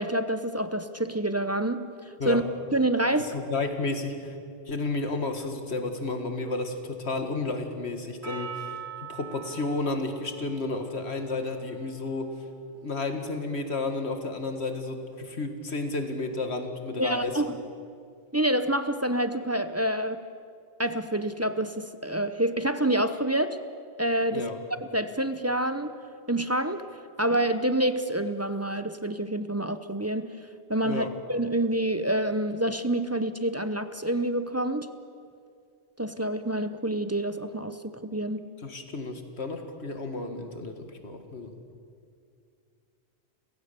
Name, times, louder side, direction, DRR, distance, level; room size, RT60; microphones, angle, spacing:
voice 1, 0.0-2.4 2.7-3.3 17.0-17.6 18.3-20.2 20.8-23.6 24.0-24.5 24.9-25.9 26.3-26.8 27.2-30.4 30.7-34.9 36.0-38.4, right 1 dB, 15° right, 10 dB, 0.7 m, -27 dB
voice 2, 3.2-4.4 4.7-8.7 9.0-12.3 12.8-17.4 24.3-24.6 30.8-31.1 38.6-41.5, left 3 dB, 75° left, 6 dB, 2.1 m, -32 dB
Percussion, 8.2-12.7, right 7 dB, 75° right, 2.7 m, -43 dB
29.5 x 16.0 x 6.9 m, 2.4 s
omnidirectional pair, 1.1 m